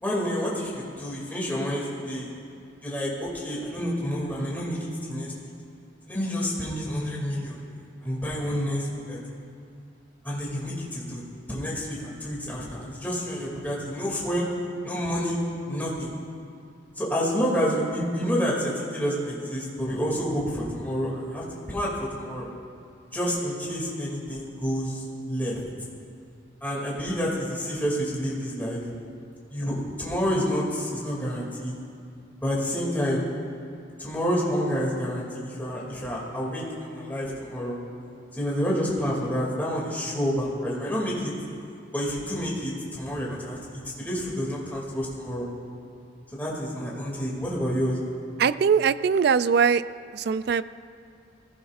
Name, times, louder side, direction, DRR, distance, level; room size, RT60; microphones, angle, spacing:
voice 1, 0.0-2.3 2.8-5.3 6.1-7.6 8.0-9.2 10.2-14.5 14.8-15.4 15.7-16.1 17.0-22.5 23.1-25.6 26.6-28.9 29.5-31.7 32.4-33.3 34.0-37.8 38.4-41.3 41.9-45.5 46.3-48.0, equal, 10° left, -5 dB, 2.5 m, -29 dB
voice 2, 48.4-49.8 50.1-50.6, right 6 dB, 55° right, 15 dB, 0.3 m, -21 dB
21.0 x 15.5 x 2.5 m, 2.5 s
head